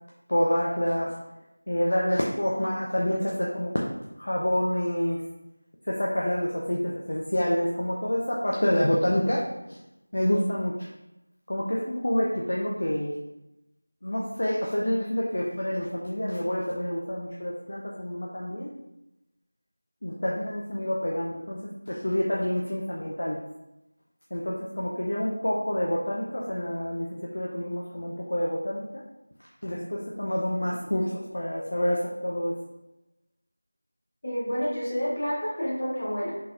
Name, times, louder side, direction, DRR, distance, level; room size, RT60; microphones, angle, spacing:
voice 1, 0.3-1.1 1.7-3.7 4.2-5.2 5.9-9.4 10.1-10.9 11.5-13.1 14.0-18.7 20.0-21.6 21.9-23.4 24.3-29.0 29.6-32.6, equal, 55° left, -4 dB, 0.5 m, -27 dB
voice 2, 34.2-36.3, equal, 40° left, -7 dB, 1.2 m, -29 dB
3.7 x 2.9 x 2.6 m, 0.92 s
figure-of-eight pair, 175°, 0 cm